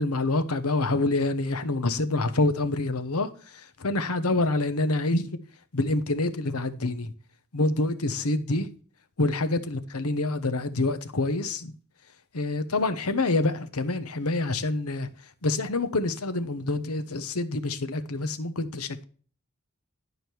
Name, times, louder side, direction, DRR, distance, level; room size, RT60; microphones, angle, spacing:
voice 1, 0.0-5.4 5.7-7.1 7.5-8.7 9.2-11.7 12.3-15.1 15.4-19.0, left 2 dB, 85° left, 1.0 m, -27 dB
11.0 x 5.1 x 4.5 m
head